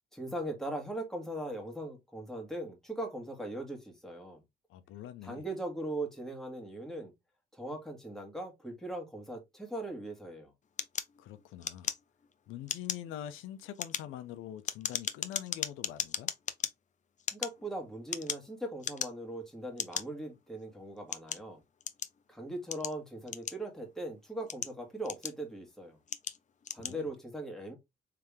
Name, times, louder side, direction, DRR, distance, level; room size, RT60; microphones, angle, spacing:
voice 1, 0.1-4.4 5.2-7.1 7.5-10.5 17.3-21.6 22.3-26.0 26.7-27.7, right 1 dB, ahead, 1.8 m, -40 dB
voice 2, 4.7-5.4 11.2-11.9 12.5-16.3 26.8-27.1, left 11 dB, 90° left, 0.6 m, -44 dB
sound 1, 10.8-12.3 12.6-13.1 13.6-16.7 17.2-18.5 18.8-19.3 19.8-20.0 20.7-22.2 22.7-23.9 24.3-25.6 26.1-26.4 26.6-27.0, left 7 dB, 40° left, 0.5 m, -36 dB
3.4 x 3.3 x 3.4 m
cardioid pair, 90°, 20 cm